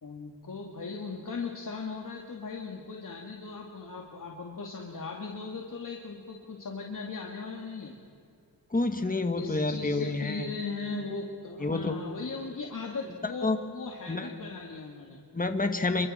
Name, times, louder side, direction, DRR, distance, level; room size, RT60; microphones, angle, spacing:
voice 1, 0.0-7.9 9.4-15.2, left 4 dB, 60° left, 0 dB, 2.3 m, -38 dB
voice 2, 8.7-10.5 11.6-12.0 13.2-13.6 14.1-14.3 15.3-16.1, left 3 dB, 25° left, 6 dB, 1.6 m, -28 dB
29.0 x 24.5 x 4.4 m, 2.5 s
wide cardioid pair, 105°, 37 cm